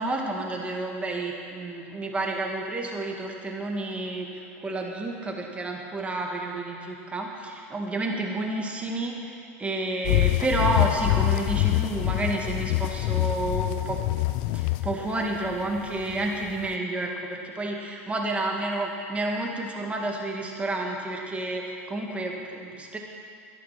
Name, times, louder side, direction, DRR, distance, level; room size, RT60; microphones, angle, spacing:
voice 1, 0.0-9.3 9.6-14.0 14.5-23.0, right 2 dB, 15° right, 0 dB, 2.2 m, -30 dB
sound 1, 10.0-16.7, left 18 dB, 60° left, 0.5 m, -26 dB
12.5 x 11.0 x 6.0 m, 2.3 s
hypercardioid pair, 100°, 8 cm